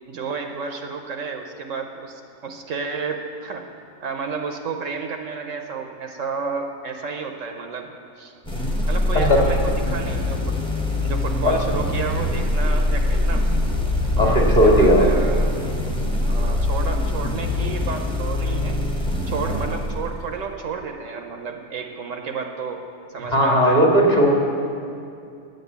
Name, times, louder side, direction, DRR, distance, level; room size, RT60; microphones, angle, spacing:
voice 1, 0.1-3.7 4.0-7.9 8.2-8.3 8.9-10.6 11.0-13.4 14.1-15.5 16.3-18.8 19.3-22.8 23.1-23.8, right 5 dB, 65° right, 4 dB, 1.1 m, -31 dB
sound 1, 8.4-20.4, left 1 dB, 5° left, 1.0 m, -23 dB
voice 2, 14.2-15.0 19.5-19.7 23.2-24.3, equal, 30° left, -1 dB, 1.7 m, -17 dB
9.3 x 8.0 x 8.0 m, 2.5 s
omnidirectional pair, 1.5 m